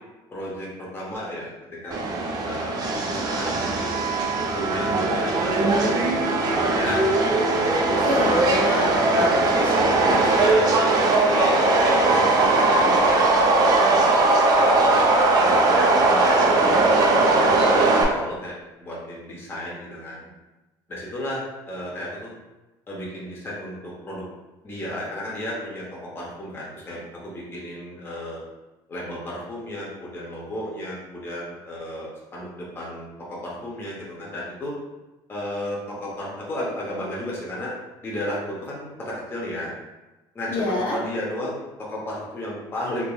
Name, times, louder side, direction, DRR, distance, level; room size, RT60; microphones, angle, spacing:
voice 1, 0.3-4.0 4.5-7.1 7.5-8.4 9.1-9.4 10.1-11.5 11.8-14.1 14.5-15.1 15.4-18.5 18.8-20.3 20.9-22.3 22.9-24.2 24.6-25.8 26.1-28.4 28.9-34.7 35.3-37.7 38.0-39.7 40.3-43.1, left 1 dB, 25° left, -5 dB, 0.7 m, -33 dB
Subway metro underground, 1.9-18.0, right 2 dB, 40° right, 0.5 m, -19 dB
voice 2, 7.8-9.7 40.5-41.0, left 2 dB, 50° left, -3 dB, 0.8 m, -28 dB
3.4 x 2.9 x 2.3 m, 1.1 s
cardioid pair, 130°, 10 cm